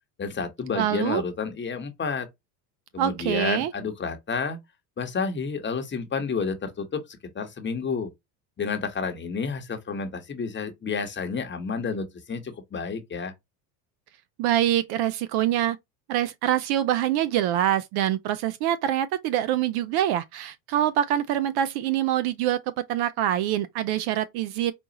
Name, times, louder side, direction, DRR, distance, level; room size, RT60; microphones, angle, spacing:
voice 1, 0.2-2.3 2.9-4.6 5.0-8.1 8.6-13.3, left 5 dB, 20° left, 1.0 m, -30 dB
voice 2, 0.8-1.2 3.0-3.7 14.4-15.8 16.1-24.7, right 11 dB, 55° right, 0.5 m, -25 dB
5.1 x 2.4 x 2.8 m
supercardioid pair, 95°, 50 cm